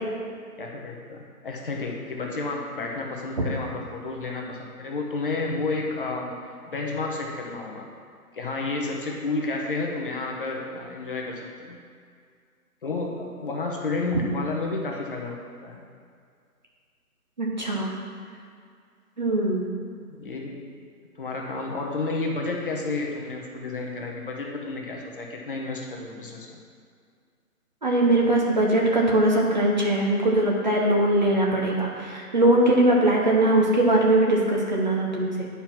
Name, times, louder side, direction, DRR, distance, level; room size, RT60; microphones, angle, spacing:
voice 1, 0.6-6.3 6.7-7.9 8.3-11.8 12.8-15.3 15.6-15.8 20.1-20.8 21.2-26.6, left 3 dB, 35° left, -1 dB, 1.0 m, -31 dB
voice 2, 17.4-17.9 19.2-19.7 27.8-35.5, right 1 dB, 30° right, -2 dB, 0.8 m, -21 dB
9.9 x 4.7 x 5.8 m, 2.2 s
hypercardioid pair, 165°, 46 cm